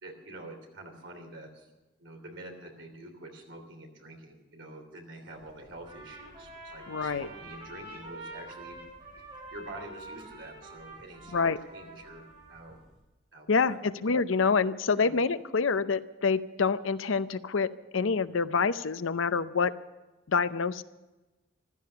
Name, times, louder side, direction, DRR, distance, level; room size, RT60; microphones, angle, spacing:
voice 1, 0.0-1.7 2.0-8.8 9.5-12.2 12.5-12.8 13.3-13.8 14.9-15.1, right 1 dB, 65° right, 3 dB, 3.1 m, -46 dB
sound 1, 5.3-13.0, equal, 5° right, 4.9 m, -61 dB
Trumpet, 5.8-12.8, right 2 dB, 30° right, 7.3 m, -47 dB
voice 2, 6.9-7.3 11.3-11.6 13.5-19.7 20.3-20.8, left 5 dB, 75° left, 14 dB, 0.6 m, -27 dB
15.5 x 13.0 x 6.8 m, 1.1 s
head